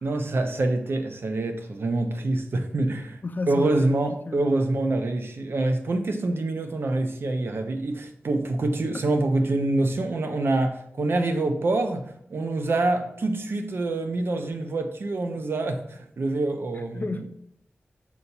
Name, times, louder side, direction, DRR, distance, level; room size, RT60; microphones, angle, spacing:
voice 1, 0.0-3.2 3.5-17.3, right 2 dB, 65° right, 0.7 m, -26 dB
voice 2, 3.2-4.5 8.9-9.0 16.7-17.3, left 3 dB, 45° left, 0.5 m, -33 dB
6.3 x 2.8 x 5.5 m
wide cardioid pair, 110°, 4 cm